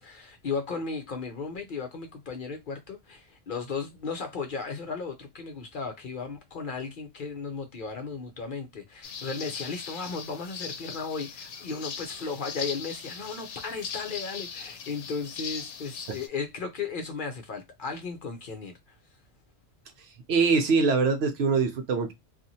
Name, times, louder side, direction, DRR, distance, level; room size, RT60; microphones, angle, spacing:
voice 1, 0.0-18.7, left 4 dB, 55° left, 0.7 m, -35 dB
sound 1, 9.0-16.3, left 6 dB, 85° left, 0.9 m, -39 dB
voice 2, 20.3-22.1, right 4 dB, 70° right, 0.8 m, -23 dB
2.8 x 2.4 x 2.6 m
omnidirectional pair, 1.2 m